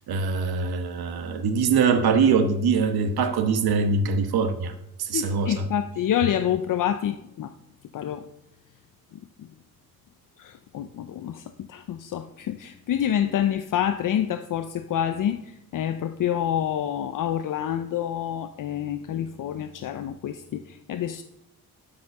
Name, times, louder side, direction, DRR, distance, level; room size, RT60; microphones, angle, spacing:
voice 1, 0.1-4.7 5.0-5.7, right 5 dB, 85° right, 1.2 m, -23 dB
voice 2, 5.1-7.5 7.9-8.2 10.4-21.2, left 10 dB, 60° left, 0.6 m, -27 dB
12.5 x 5.6 x 6.6 m
cardioid pair, 140°, 37 cm